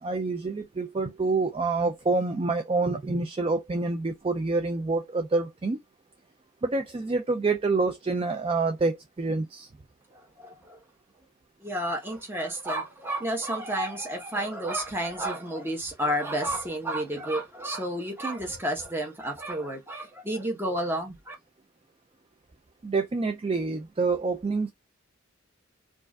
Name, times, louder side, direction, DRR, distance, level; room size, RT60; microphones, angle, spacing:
voice 1, 0.0-5.8 6.6-9.7 22.8-24.7, right 3 dB, 25° right, 0.3 m, -27 dB
voice 2, 10.1-10.8 11.6-21.3, right 1 dB, 10° right, 1.0 m, -31 dB
4.5 x 2.5 x 2.3 m
head